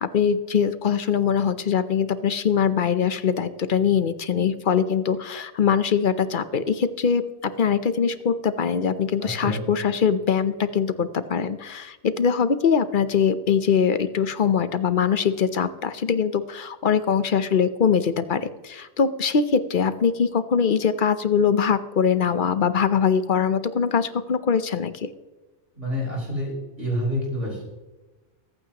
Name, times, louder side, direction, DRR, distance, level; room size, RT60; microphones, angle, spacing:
voice 1, 0.0-7.2 7.6-25.1, left 7 dB, 50° left, 12 dB, 0.8 m, -22 dB
voice 2, 9.2-9.6 25.7-26.5 26.8-27.6, equal, 80° right, -4 dB, 5.3 m, -27 dB
23.0 x 9.0 x 2.9 m, 1.2 s
omnidirectional pair, 1.2 m